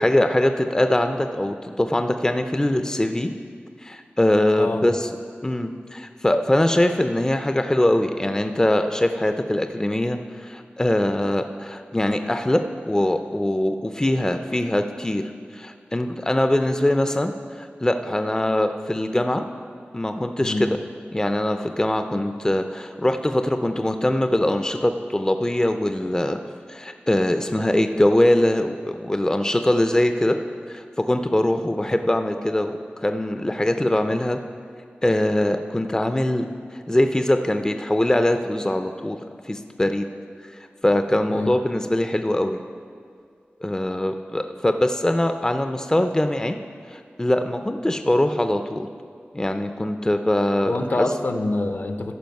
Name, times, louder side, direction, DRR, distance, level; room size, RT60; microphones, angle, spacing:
voice 1, 0.0-3.3 3.8-5.1 5.4-15.2 15.5-19.4 19.9-20.8 21.1-26.4 26.7-30.4 30.7-34.4 35.0-36.5 36.9-39.2 39.5-40.0 40.8-42.6 43.6-46.6 46.9-48.9 49.3-51.1, left 1 dB, 15° left, 7 dB, 0.4 m, -22 dB
voice 2, 4.6-4.9 20.4-20.7 31.8-32.0 41.3-41.5 50.6-52.2, left 2 dB, 60° left, 7 dB, 0.7 m, -26 dB
14.0 x 5.0 x 5.3 m, 2.2 s
wide cardioid pair, 55°, 4 cm